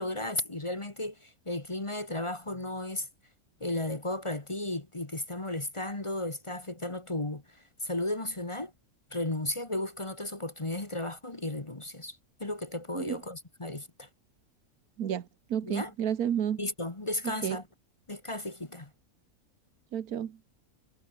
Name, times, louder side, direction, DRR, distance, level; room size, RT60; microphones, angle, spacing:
voice 1, 0.0-3.1 3.6-8.7 9.1-14.1 15.6-15.9 16.6-17.6 18.1-18.9, left 1 dB, 20° left, 1.5 m, -34 dB
voice 2, 15.0-16.6 17.2-17.6 19.9-20.4, right 9 dB, 80° right, 1.6 m, -31 dB
omnidirectional pair, 1.6 m